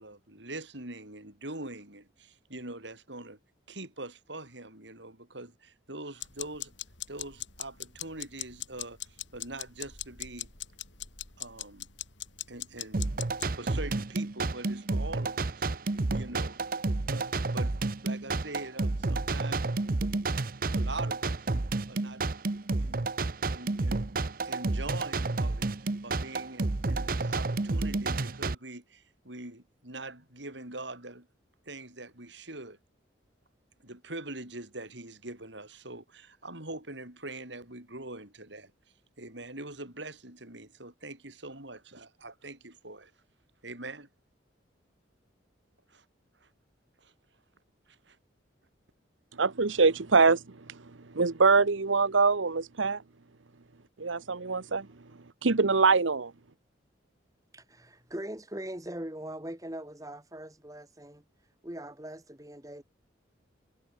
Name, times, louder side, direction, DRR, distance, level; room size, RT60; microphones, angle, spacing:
voice 1, 0.0-3.4 3.7-6.7 7.1-10.5 11.4-11.9 12.5-13.0 13.5-16.7 17.1-17.7 18.0-19.8 20.7-21.5 21.9-22.2 22.8-23.1 23.5-24.1 24.4-31.3 31.6-32.8 33.8-38.7 39.2-43.1 43.6-44.1 45.9-46.0 46.4-46.5 47.0-47.1 47.9-48.2, right 2 dB, 70° right, 6.6 m, -43 dB
sound 1, 6.2-13.5, left 12 dB, 75° left, 6.3 m, -40 dB
sound 2, 12.9-28.5, right 3 dB, 50° right, 0.8 m, -30 dB
voice 2, 49.4-50.4 50.7-50.8 51.1-53.0 54.0-54.9 55.4-56.3, right 4 dB, 85° right, 1.0 m, -24 dB
voice 3, 57.5-61.2 61.6-62.8, right 1 dB, 20° right, 1.9 m, -41 dB
head